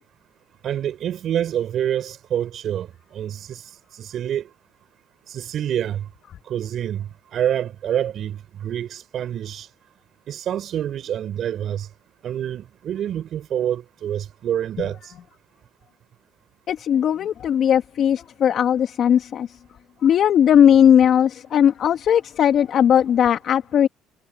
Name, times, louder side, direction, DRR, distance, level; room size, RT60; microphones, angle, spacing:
voice 1, 0.6-2.9 3.1-3.6 3.9-4.5 5.3-6.0 6.5-9.7 10.3-11.9 12.2-15.1, right 10 dB, 55° right, 4.4 m, -27 dB
voice 2, 16.7-19.5 20.0-23.9, left 9 dB, 55° left, 2.0 m, -17 dB
supercardioid pair, 85°, 0 cm